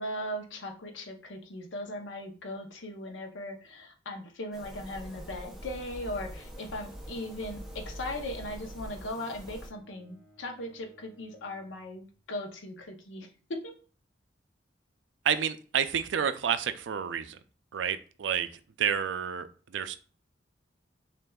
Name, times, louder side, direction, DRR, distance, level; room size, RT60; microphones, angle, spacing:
voice 1, 0.0-13.7, left 1 dB, 90° left, 4 dB, 0.8 m, -38 dB
sound 1, 4.5-9.7, equal, ahead, 0.6 m, -44 dB
Bowed string instrument, 5.7-12.4, right 1 dB, 15° left, 1.3 m, -61 dB
voice 2, 15.2-17.4 17.7-19.9, right 8 dB, 80° right, 11 dB, 0.4 m, -30 dB
6.4 x 2.5 x 2.3 m, 0.41 s
head